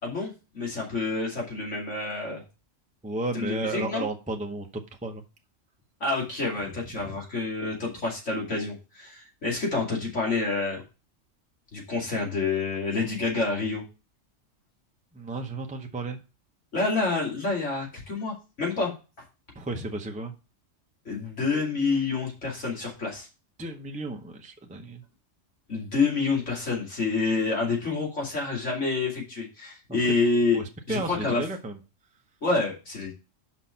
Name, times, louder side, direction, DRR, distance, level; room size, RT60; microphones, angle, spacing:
voice 1, 0.0-2.4 3.3-4.0 6.0-10.8 11.7-13.8 16.7-18.9 21.0-23.3 25.7-30.6 30.9-31.5 32.4-33.1, left 3 dB, 70° left, -2 dB, 2.8 m, -28 dB
voice 2, 3.0-5.2 7.0-7.1 15.2-16.2 19.6-20.3 23.6-25.0 30.5-30.6 30.9-31.8, right 2 dB, 10° right, 4 dB, 0.6 m, -33 dB
6.1 x 5.2 x 5.6 m, 0.30 s
omnidirectional pair, 1.3 m